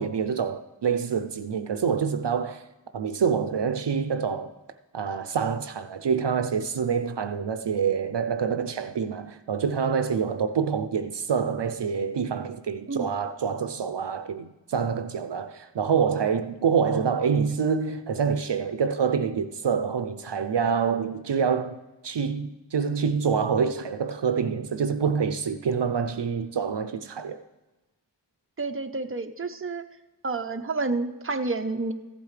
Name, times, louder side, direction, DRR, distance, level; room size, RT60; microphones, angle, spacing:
voice 1, 0.0-2.6 2.9-4.5 4.9-21.8 22.0-27.4, right 6 dB, 70° right, 0.6 m, -26 dB
voice 2, 28.6-29.8 30.2-31.9, right 3 dB, 30° right, 0.8 m, -29 dB
15.0 x 8.4 x 3.3 m
wide cardioid pair, 50°, 43 cm